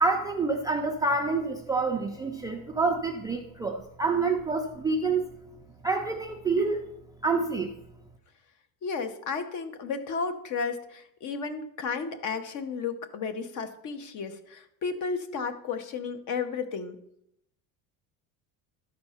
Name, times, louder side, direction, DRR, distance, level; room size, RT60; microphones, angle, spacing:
voice 1, 0.0-5.3 5.8-6.9 7.2-7.7, right 3 dB, 10° right, 1 dB, 0.3 m, -27 dB
voice 2, 8.8-17.0, left 5 dB, 45° left, 10 dB, 1.0 m, -33 dB
12.0 x 4.3 x 5.7 m, 0.77 s
cardioid pair, 145°, 40 cm